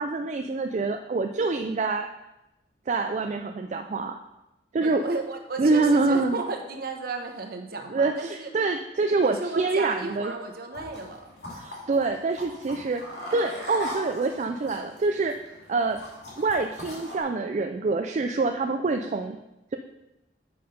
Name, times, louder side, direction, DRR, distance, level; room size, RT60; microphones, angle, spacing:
voice 1, 0.0-2.1 2.9-4.2 4.7-5.0 5.6-6.4 7.9-10.3 11.6-13.0 13.3-15.3 15.7-16.0 16.4-19.4, right 3 dB, 40° right, 4 dB, 0.4 m, -26 dB
voice 2, 4.8-8.5 9.2-11.2 14.5-14.7, right 3 dB, 60° right, 3 dB, 1.1 m, -34 dB
sound 1, 10.7-17.2, left 1 dB, 65° left, 2.8 m, -40 dB
7.7 x 5.5 x 5.3 m, 0.94 s
head